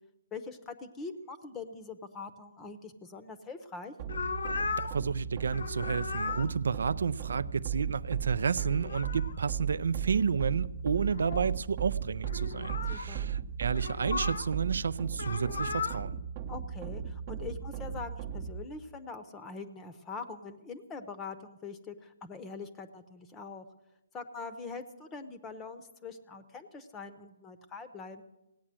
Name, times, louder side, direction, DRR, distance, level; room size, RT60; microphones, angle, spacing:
voice 1, 0.3-3.9 12.9-13.3 16.5-23.6 24.1-28.2, left 4 dB, 15° left, 0.8 m, -43 dB
sound 1, 4.0-18.6, right 8 dB, 35° right, 0.9 m, -36 dB
sound 2, 4.1-5.0 5.4-6.5 8.5-9.4 10.3-10.4 10.8-11.5 12.2-13.1 13.8-14.5 15.1-16.0, left 5 dB, 70° left, 0.8 m, -36 dB
voice 2, 4.8-16.2, right 5 dB, 70° right, 0.5 m, -31 dB
17.0 x 8.8 x 7.5 m
hypercardioid pair, 150°, 0 cm